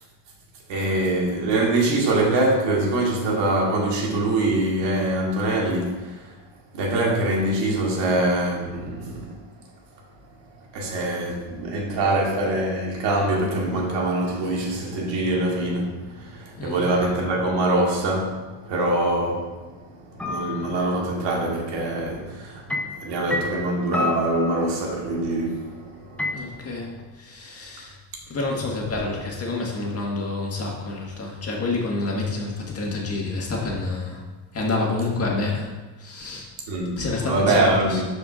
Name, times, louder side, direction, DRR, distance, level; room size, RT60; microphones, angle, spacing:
voice 1, 0.7-6.3 6.7-9.4 10.7-19.7 20.1-26.6 36.7-38.0, right 2 dB, 70° right, -1 dB, 1.9 m, -24 dB
sound 1, 20.2-21.0 22.7-25.1 26.2-26.3, left 2 dB, 5° left, 0.5 m, -29 dB
voice 2, 26.3-26.9 27.2-27.9 28.3-34.2 34.5-35.7 36.0-36.5 37.0-38.0, left 3 dB, 35° left, -2 dB, 1.7 m, -28 dB
12.0 x 4.8 x 2.5 m, 1.2 s
cardioid pair, 120°, 44 cm